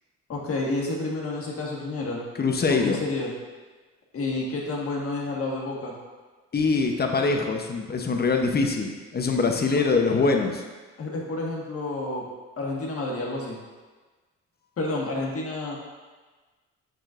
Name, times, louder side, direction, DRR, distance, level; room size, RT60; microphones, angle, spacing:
voice 1, 0.3-2.2 2.7-3.3 4.1-5.9 9.6-9.8 11.0-12.3 12.6-13.6 14.8-15.8, left 2 dB, 50° left, -2 dB, 1.6 m, -30 dB
voice 2, 2.4-3.0 6.5-10.6, left 4 dB, 30° left, 3 dB, 0.8 m, -23 dB
6.6 x 6.3 x 2.5 m, 1.3 s
cardioid pair, 90°, 30 cm